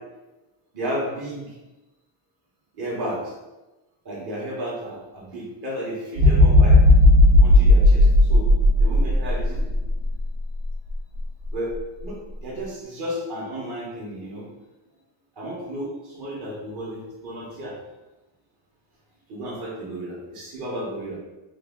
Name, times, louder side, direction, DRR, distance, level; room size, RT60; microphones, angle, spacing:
voice 1, 0.7-1.6 2.7-3.3 4.0-6.8 7.4-8.5 8.8-9.7 11.5-11.8 12.0-14.5 15.4-17.8 19.3-21.2, equal, 50° right, -4 dB, 1.1 m, -33 dB
sound 1, 6.2-10.2 10.7-10.9, left 1 dB, 80° right, 1.2 m, -14 dB
3.2 x 2.3 x 3.5 m, 1.1 s
cardioid pair, 140°, 49 cm